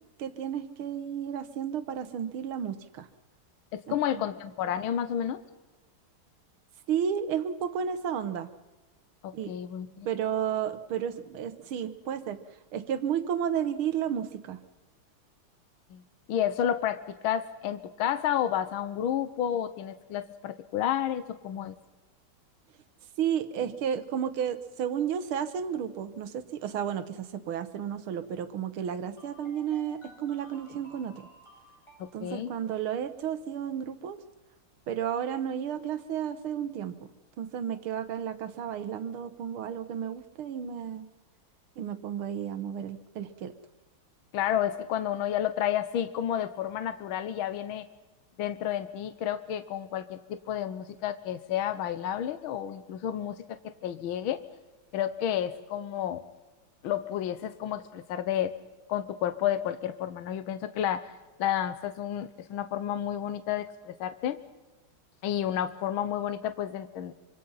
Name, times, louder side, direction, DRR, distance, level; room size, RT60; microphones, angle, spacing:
voice 1, 0.2-3.1 3.9-4.2 6.9-8.5 9.3-9.5 10.1-12.4 12.7-14.6 23.2-31.3 32.1-34.2 34.9-37.0 37.4-41.1 41.8-43.5, right 8 dB, 80° right, 12 dB, 1.9 m, -32 dB
voice 2, 3.7-5.4 9.2-10.1 15.9-16.0 16.3-21.8 32.0-32.5 44.3-47.8 48.4-54.4 54.9-56.2 56.8-58.5 58.9-61.1 61.4-64.4 65.2-67.1, left 10 dB, 75° left, 11 dB, 1.7 m, -31 dB
sound 1, 29.1-32.3, equal, 10° left, 8.1 m, -54 dB
25.0 x 24.5 x 5.6 m, 1.2 s
omnidirectional pair, 2.3 m